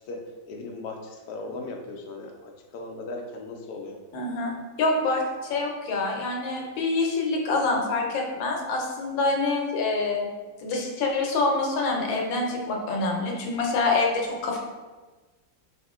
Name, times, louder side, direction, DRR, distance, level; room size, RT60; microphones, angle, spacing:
voice 1, 0.1-4.0, left 2 dB, 70° left, 1 dB, 0.9 m, -38 dB
voice 2, 4.1-5.2 5.5-10.3 10.6-14.6, left 3 dB, 85° left, 0 dB, 1.5 m, -26 dB
4.1 x 3.6 x 2.3 m, 1.3 s
omnidirectional pair, 2.0 m